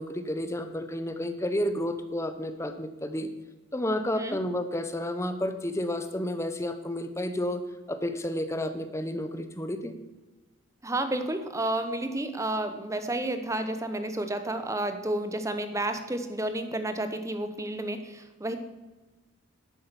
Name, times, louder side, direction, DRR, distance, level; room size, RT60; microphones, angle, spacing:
voice 1, 0.0-3.3 3.7-7.6 7.9-10.0, left 1 dB, 15° left, 9 dB, 0.8 m, -31 dB
voice 2, 10.8-18.6, right 1 dB, 15° right, 8 dB, 0.9 m, -31 dB
11.0 x 8.5 x 7.0 m, 1.2 s
head